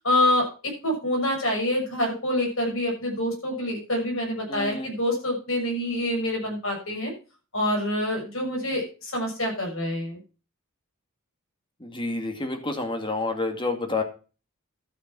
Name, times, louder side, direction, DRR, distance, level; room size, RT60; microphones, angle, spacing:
voice 1, 0.0-0.5 0.8-7.1 7.5-10.2, left 1 dB, 65° left, 1 dB, 6.5 m, -26 dB
voice 2, 4.5-4.9 11.8-14.0, left 3 dB, 20° left, 5 dB, 2.2 m, -29 dB
12.5 x 6.9 x 6.0 m, 0.35 s
head